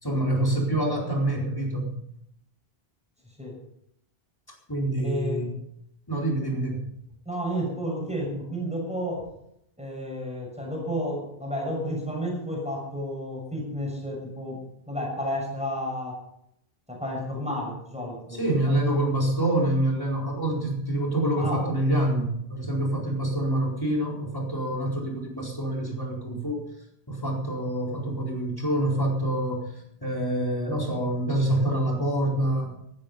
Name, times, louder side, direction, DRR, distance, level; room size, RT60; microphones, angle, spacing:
voice 1, 0.0-2.0 4.7-5.5 6.1-6.9 18.3-26.6 27.1-29.7 30.0-32.8, right 1 dB, 20° left, -2 dB, 4.6 m, -26 dB
voice 2, 5.0-5.5 7.2-9.3 9.8-14.6 14.9-16.2 16.9-18.8 21.4-21.6, equal, 5° right, -2 dB, 6.4 m, -31 dB
15.0 x 13.0 x 5.5 m, 0.74 s
omnidirectional pair, 1.1 m